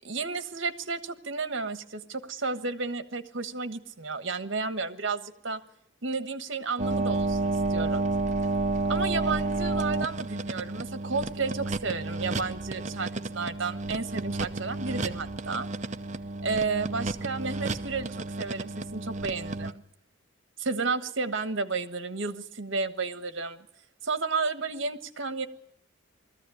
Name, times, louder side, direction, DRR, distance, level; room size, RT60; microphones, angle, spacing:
voice 1, 0.0-5.6 6.0-8.0 8.9-15.7 16.4-19.8 20.6-23.6 24.0-25.5, right 4 dB, 65° right, 10 dB, 1.3 m, -32 dB
sound 1, 6.8-19.7, right 2 dB, 35° right, 0.8 m, -31 dB
20.0 x 14.5 x 10.0 m, 0.76 s
head